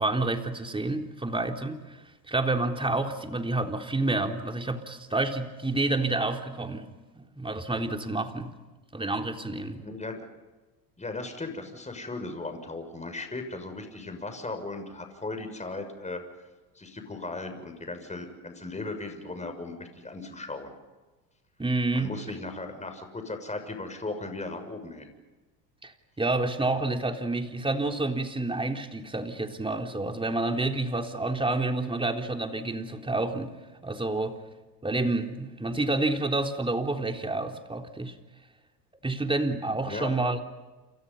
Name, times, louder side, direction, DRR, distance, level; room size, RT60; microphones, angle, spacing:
voice 1, 0.0-2.0 2.3-6.9 7.2-8.5 8.9-9.8 21.6-22.1 25.8-25.9 26.2-33.5 33.8-34.4 34.8-38.1 39.0-40.4, right 2 dB, 10° right, 4 dB, 3.7 m, -29 dB
voice 2, 9.8-10.3 11.0-16.2 16.7-20.7 21.9-25.1 39.8-40.1, left 2 dB, 15° left, 6 dB, 6.5 m, -37 dB
30.0 x 28.5 x 5.6 m, 1.2 s
hypercardioid pair, 80°, 49 cm